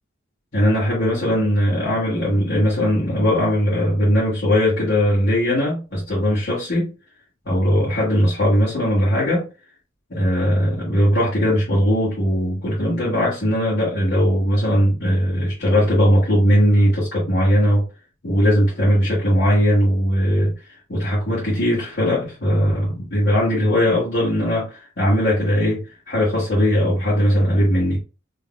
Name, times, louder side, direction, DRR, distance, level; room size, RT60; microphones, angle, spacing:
voice 1, 0.5-6.9 7.5-9.5 10.1-17.8 18.2-20.5 20.9-28.0, equal, 55° left, 1.8 m, -19 dB
3.9 x 3.4 x 2.4 m
head